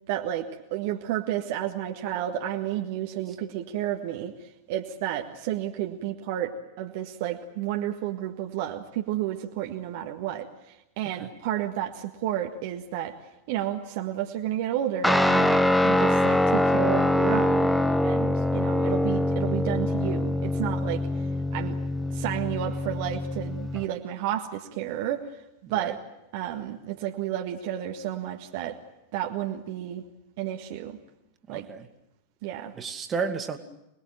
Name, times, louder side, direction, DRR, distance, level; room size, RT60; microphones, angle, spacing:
voice 1, 0.1-10.5 11.0-13.2 13.5-17.7 18.0-21.0 21.5-21.8 22.1-25.2 25.7-26.0 26.3-28.8 29.1-30.0 30.4-31.0 31.5-31.6 32.4-32.7, right 12 dB, 50° right, 3 dB, 1.7 m, -31 dB
Guitar, 15.0-23.8, left 1 dB, 5° left, 1.2 m, -24 dB
voice 2, 25.7-26.0 31.5-31.9 32.8-33.6, right 5 dB, 25° right, 7 dB, 2.4 m, -32 dB
26.5 x 20.5 x 9.0 m, 0.87 s
figure-of-eight pair, 90°, 0 cm